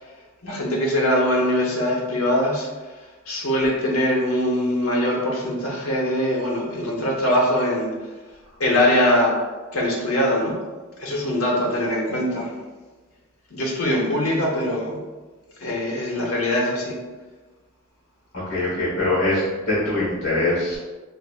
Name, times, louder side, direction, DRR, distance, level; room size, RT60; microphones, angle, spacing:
voice 1, 0.4-2.7 3.3-7.9 8.6-9.3 9.7-10.5 11.0-12.5 13.5-15.0 15.6-16.9, left 1 dB, 80° left, -2 dB, 0.9 m, -22 dB
voice 2, 18.5-20.8, left 2 dB, 55° left, -8 dB, 1.3 m, -22 dB
4.9 x 2.5 x 2.4 m, 1.3 s
head